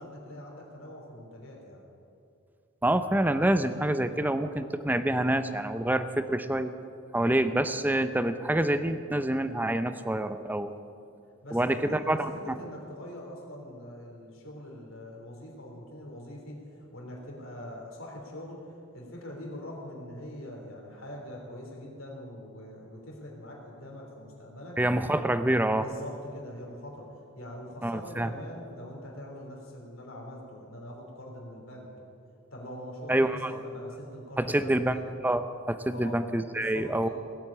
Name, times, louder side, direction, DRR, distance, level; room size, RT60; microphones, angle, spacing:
voice 1, 0.0-1.8 11.4-16.6 16.9-24.8 25.8-31.9 32.5-35.1 35.9-36.2 36.5-37.1, left 1 dB, 75° left, -1 dB, 3.3 m, -43 dB
voice 2, 2.8-6.7 7.1-10.7 11.5-12.6 24.8-25.9 27.8-28.3 33.1-33.6 34.4-37.1, right 1 dB, 10° right, 10 dB, 0.6 m, -27 dB
18.0 x 8.1 x 8.6 m, 2.5 s
head